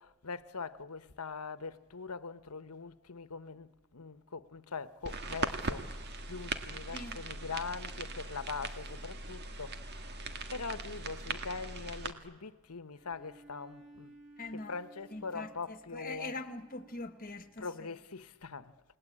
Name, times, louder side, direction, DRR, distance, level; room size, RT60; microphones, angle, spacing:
voice 1, 0.0-14.1 14.5-16.4 17.6-18.7, left 4 dB, 85° left, 1.2 m, -42 dB
sound 1, 5.0-12.1, right 3 dB, 50° right, 2.0 m, -40 dB
Bowed string instrument, 12.9-17.6, right 2 dB, ahead, 7.7 m, -58 dB
voice 2, 14.4-14.8 15.1-17.7, left 2 dB, 40° left, 1.8 m, -43 dB
29.5 x 19.5 x 8.7 m
head